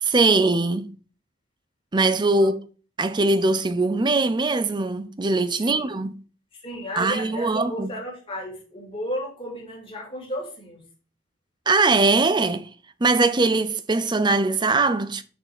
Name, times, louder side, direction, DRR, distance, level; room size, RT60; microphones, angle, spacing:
voice 1, 0.0-0.9 1.9-2.5 3.0-6.2 6.9-7.9 11.7-12.7 13.0-15.2, right 3 dB, 20° right, 0.5 m, -21 dB
voice 2, 6.5-10.8, equal, 25° left, 2.8 m, -34 dB
6.5 x 4.9 x 6.0 m
head